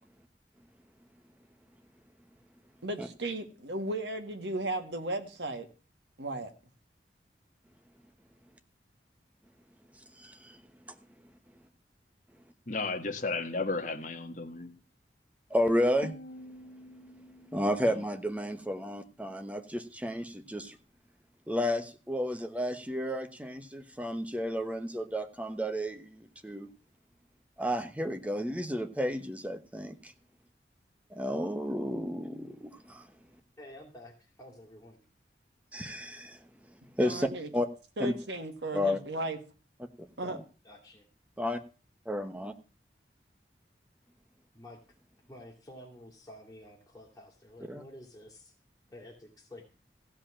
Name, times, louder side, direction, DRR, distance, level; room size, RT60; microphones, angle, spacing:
voice 1, 2.8-5.7 6.2-6.5 37.0-37.5 38.0-39.4 40.2-40.4, right 1 dB, 90° right, 1.8 m, -35 dB
voice 2, 10.2-10.6 10.9-11.0 15.5-16.1 17.5-20.8 21.5-26.7 27.6-30.1 31.1-33.1 35.7-36.4 37.0-37.7 38.0-38.1 38.7-39.0 40.0-40.4 41.4-41.6 42.1-42.5 47.7-47.8, equal, 10° right, 1.1 m, -32 dB
voice 3, 12.7-14.7 17.8-18.0, left 3 dB, 45° left, 1.6 m, -34 dB
sound 1, 16.0-19.0, left 1 dB, 75° left, 0.7 m, -50 dB
voice 4, 33.6-35.0 40.6-41.0 44.5-44.8 45.3-48.5 48.9-49.6, left 1 dB, 15° left, 2.9 m, -50 dB
16.0 x 5.3 x 8.6 m
head